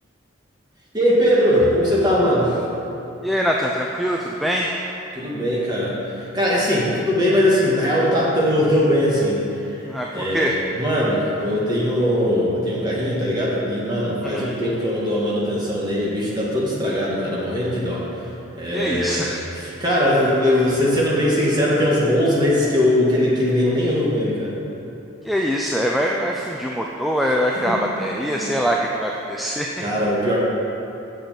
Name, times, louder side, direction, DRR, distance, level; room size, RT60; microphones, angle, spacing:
voice 1, 0.9-2.6 5.1-9.4 10.1-18.0 18.6-19.3 19.6-24.5 28.3-28.5 29.8-30.4, equal, 20° right, -6 dB, 1.9 m, -20 dB
voice 2, 3.2-4.9 9.9-10.6 14.2-14.6 18.7-19.4 25.2-29.8, equal, ahead, -1 dB, 0.4 m, -23 dB
7.9 x 6.8 x 7.4 m, 2.9 s
head